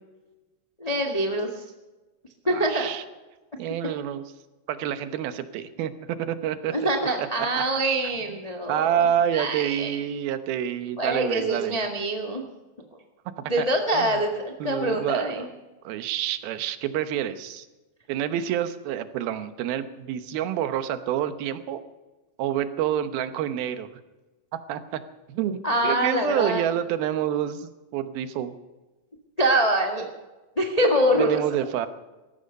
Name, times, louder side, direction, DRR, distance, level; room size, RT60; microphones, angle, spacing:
voice 1, 0.8-1.6 2.5-2.9 6.7-9.0 9.3-10.0 11.0-12.4 13.5-15.5 25.6-26.6 29.4-30.1 30.6-31.4, right 1 dB, 70° left, 2 dB, 0.3 m, -24 dB
voice 2, 2.5-3.0 3.6-4.2 4.7-6.9 7.2-7.3 8.7-11.8 13.6-13.7 13.9-14.2 14.6-15.5 15.8-17.7 18.1-21.8 22.4-23.9 24.7-25.0 25.3-28.5 31.2-31.9, right 10 dB, 85° right, 11 dB, 2.9 m, -28 dB
18.0 x 14.5 x 5.4 m, 1.1 s
omnidirectional pair, 4.2 m